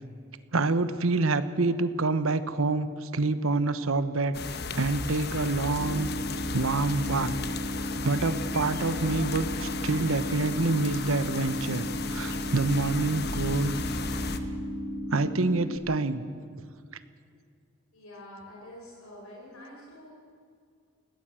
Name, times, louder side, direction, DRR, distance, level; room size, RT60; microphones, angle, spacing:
voice 1, 0.5-4.4 4.8-6.1 6.5-7.3 8.0-13.8 15.1-16.2, right 3 dB, 80° right, 12 dB, 1.1 m, -27 dB
sound 1, 4.3-14.4, left 3 dB, 50° left, 1.2 m, -35 dB
sound 2, 5.8-15.8, equal, ahead, 2.3 m, -35 dB
voice 2, 17.9-20.1, left 1 dB, 85° left, -3 dB, 4.8 m, -46 dB
21.0 x 17.0 x 7.7 m, 2.3 s
head